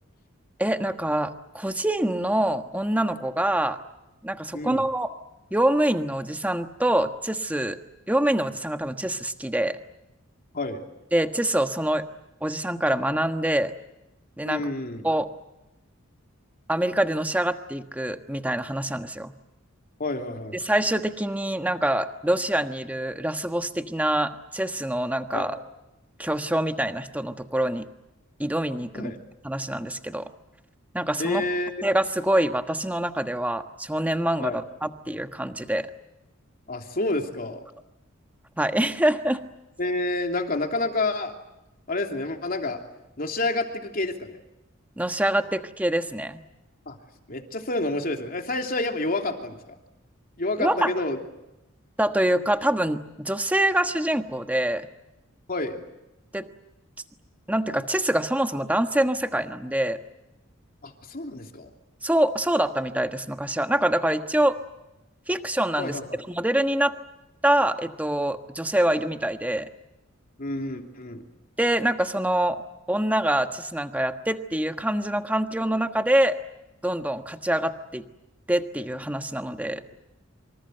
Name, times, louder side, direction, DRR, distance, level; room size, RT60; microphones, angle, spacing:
voice 1, 0.6-3.8 4.2-5.1 5.5-7.8 8.1-9.8 11.1-12.0 12.4-13.7 14.4-14.6 15.0-15.3 16.7-19.3 20.6-25.6 26.2-27.9 28.4-29.1 29.4-30.3 30.9-31.4 31.8-35.9 38.6-39.4 45.0-46.4 50.6-50.9 52.0-54.9 56.3-56.4 57.5-60.0 62.0-64.6 65.3-66.0 66.3-66.9 67.4-69.7 71.6-72.6 72.9-76.4 76.8-78.0 78.5-79.8, right 1 dB, 5° right, 7 dB, 1.3 m, -25 dB
voice 2, 4.5-4.8 10.5-10.8 14.4-15.0 20.0-20.6 25.3-25.5 28.9-29.2 31.2-31.9 34.4-34.6 36.7-37.6 39.8-41.3 41.9-42.8 43.2-44.4 46.9-47.0 47.3-49.7 50.4-51.2 55.5-55.8 60.8-61.7 65.8-66.1 70.4-71.2, left 2 dB, 45° left, 4 dB, 3.0 m, -29 dB
27.0 x 25.5 x 7.9 m, 0.95 s
head